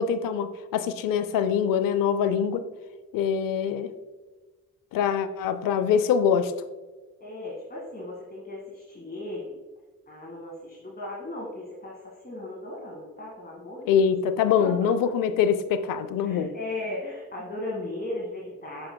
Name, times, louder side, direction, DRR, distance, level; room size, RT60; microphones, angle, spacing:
voice 1, 0.0-2.6 3.1-3.9 4.9-6.5 13.9-16.5, left 7 dB, 90° left, 12 dB, 0.5 m, -24 dB
voice 2, 7.2-9.6 10.1-14.1 14.6-14.9 16.2-18.9, left 2 dB, 30° left, -3 dB, 1.7 m, -37 dB
7.6 x 6.1 x 2.2 m, 1.3 s
supercardioid pair, 45°, 33 cm